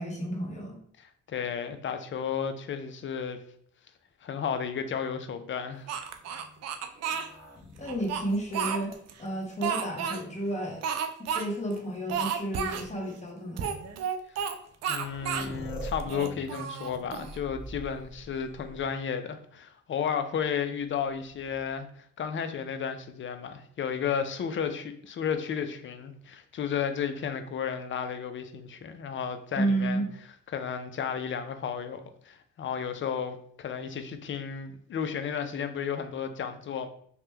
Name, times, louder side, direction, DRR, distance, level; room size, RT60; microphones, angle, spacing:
voice 1, 0.0-0.8 7.8-8.9 9.2-10.8 11.3-13.7 29.6-30.0, right 1 dB, 25° left, -1 dB, 1.0 m, -31 dB
voice 2, 1.0-3.4 4.2-5.9 14.3-14.5 14.9-30.0 30.5-36.9, left 7 dB, 40° left, 9 dB, 0.4 m, -33 dB
sound 1, 5.9-9.8 10.5-11.2 12.3-12.4 13.1-13.3 14.4-14.5 14.7-19.2 21.1-21.8, equal, ahead, 0.8 m, -46 dB
Speech, 5.9-7.3 7.8-9.1 9.6-10.2 10.8-11.4 11.7-11.8 12.1-12.9 13.6-14.5 14.8-15.5 16.0-17.4, right 7 dB, 60° right, 0.4 m, -32 dB
2.9 x 2.1 x 3.3 m, 0.63 s
cardioid pair, 90°, 30 cm